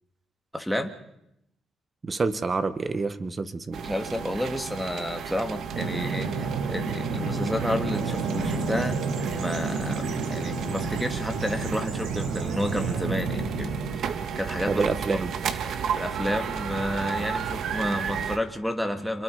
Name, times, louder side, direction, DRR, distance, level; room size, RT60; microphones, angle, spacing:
voice 1, 0.5-0.9 3.8-9.0 9.3-15.3 15.6-19.2, equal, ahead, 6 dB, 2.8 m, -31 dB
voice 2, 2.0-3.8 14.7-15.3, right 4 dB, 30° right, 11 dB, 1.7 m, -27 dB
sound 1, 3.7-18.4, right 7 dB, 70° right, 2.0 m, -34 dB
Bird vocalization bird call bird song, 5.7-14.0, right 4 dB, 90° right, 6.6 m, -30 dB
28.0 x 22.5 x 5.1 m, 0.82 s
cardioid pair, 90°, 0 cm